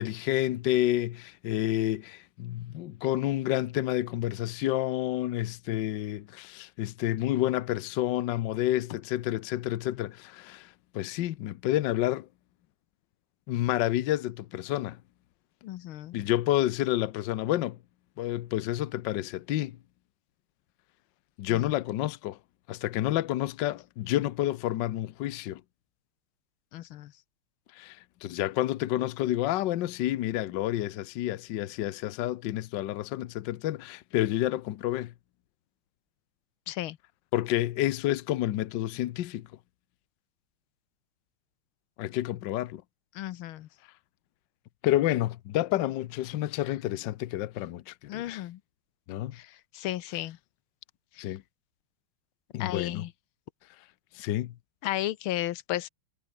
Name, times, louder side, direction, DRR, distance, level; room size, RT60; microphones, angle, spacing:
voice 1, 0.0-12.3 13.5-15.0 16.1-17.8 18.2-19.8 21.4-22.4 22.7-25.6 27.7-35.1 37.3-39.5 42.0-42.8 44.8-48.4 49.1-49.4 51.2-51.4 52.5-53.0 54.1-54.5, left 14 dB, 65° left, 1.3 m, -29 dB
voice 2, 15.6-16.2 21.5-21.7 26.7-27.1 36.7-37.0 43.1-43.7 48.1-48.6 49.3-49.5 49.7-50.4 52.6-53.1 54.8-55.9, left 14 dB, 85° left, 1.6 m, -33 dB
omnidirectional pair, 2.3 m